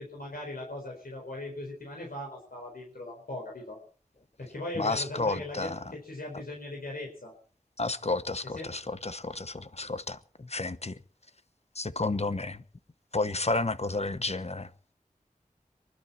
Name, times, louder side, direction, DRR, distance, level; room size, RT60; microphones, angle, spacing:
voice 1, 0.0-3.8 4.4-7.3 8.6-8.7, left 1 dB, 85° left, 4.4 m, -39 dB
voice 2, 4.8-5.8 7.8-10.9 11.8-12.6 13.1-14.7, left 3 dB, 45° left, 1.1 m, -31 dB
24.0 x 12.0 x 4.4 m
wide cardioid pair, 40°, 15 cm